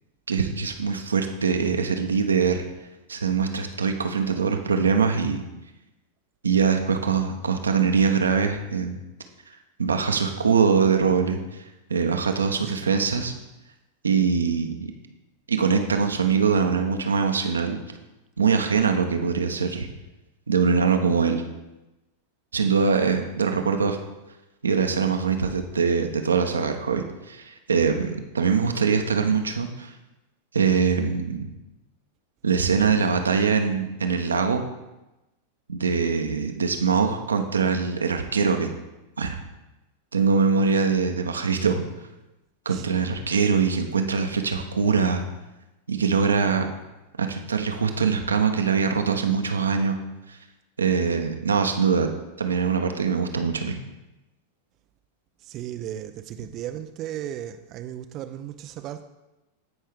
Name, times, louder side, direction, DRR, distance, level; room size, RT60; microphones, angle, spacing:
voice 1, 0.3-2.6 3.1-5.4 6.4-9.0 9.8-11.4 11.9-13.3 14.0-14.9 15.5-17.8 18.4-19.9 20.5-21.4 22.5-24.0 24.6-29.9 30.5-31.5 32.4-34.6 35.7-38.7 39.2-39.4 40.1-41.8 42.7-45.2 45.9-46.7 47.2-50.0 50.3-50.4 50.8-52.1 52.4-53.8, right 5 dB, 75° right, 0.9 m, -23 dB
voice 2, 12.6-13.0 40.7-40.8 42.7-43.1 55.4-59.0, right 11 dB, 35° right, 0.4 m, -36 dB
16.0 x 5.5 x 3.6 m
figure-of-eight pair, 90°, 0 cm